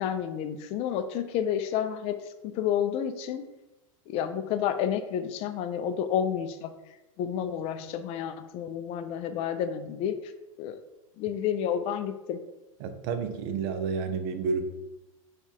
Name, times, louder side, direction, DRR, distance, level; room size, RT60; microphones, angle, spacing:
voice 1, 0.0-2.2 2.4-3.4 4.1-6.8 7.2-10.3 10.6-10.8 11.2-12.4, left 9 dB, 35° left, 10 dB, 0.4 m, -30 dB
voice 2, 12.8-14.6, right 5 dB, 45° right, 9 dB, 0.5 m, -30 dB
3.9 x 2.4 x 4.5 m, 1.0 s
figure-of-eight pair, 90°, 18 cm